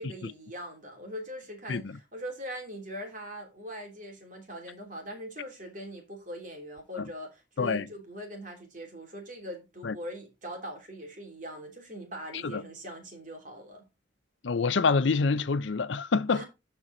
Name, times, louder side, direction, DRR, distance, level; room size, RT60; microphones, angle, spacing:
voice 1, 0.0-13.8 16.3-16.4, equal, 40° right, 3.0 m, -41 dB
voice 2, 14.4-16.4, left 4 dB, 70° left, 0.5 m, -27 dB
12.0 x 4.5 x 3.9 m
head